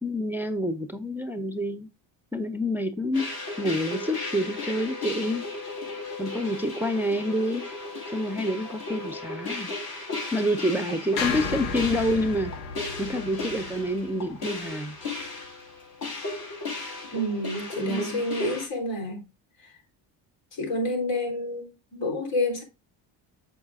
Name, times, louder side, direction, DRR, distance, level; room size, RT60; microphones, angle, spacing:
voice 1, 0.0-1.9 2.3-3.3 3.6-5.4 6.2-7.6 8.1-9.7 10.3-12.5 13.0-15.0 17.8-18.2, equal, 5° right, 0.5 m, -28 dB
sound 1, 3.1-18.7, left 2 dB, 50° left, 2.9 m, -35 dB
sound 2, 11.2-15.5, left 5 dB, 90° left, 1.2 m, -35 dB
voice 2, 17.1-19.2 19.6-19.7 20.5-22.6, left 1 dB, 70° left, 3.5 m, -29 dB
7.3 x 6.1 x 2.4 m
cardioid pair, 90°, 47 cm